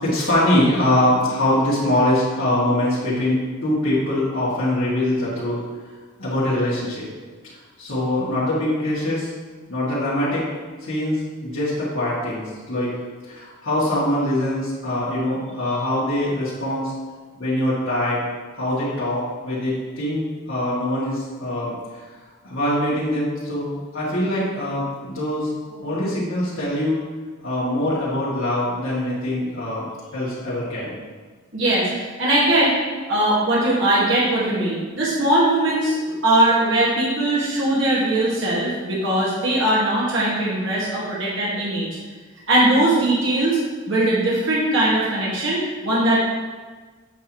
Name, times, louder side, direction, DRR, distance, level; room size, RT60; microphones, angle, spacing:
voice 1, 0.0-5.6 6.2-7.0 7.8-9.3 9.7-10.5 10.9-12.9 13.3-16.9 17.4-18.2 18.5-21.7 22.4-27.0 27.4-30.9, left 1 dB, 70° left, -11 dB, 2.1 m, -23 dB
voice 2, 31.5-32.7 33.1-36.0 36.2-41.9 42.5-43.6 43.9-46.2, right 1 dB, 60° right, -7 dB, 1.8 m, -20 dB
8.2 x 5.8 x 3.0 m, 1.4 s
head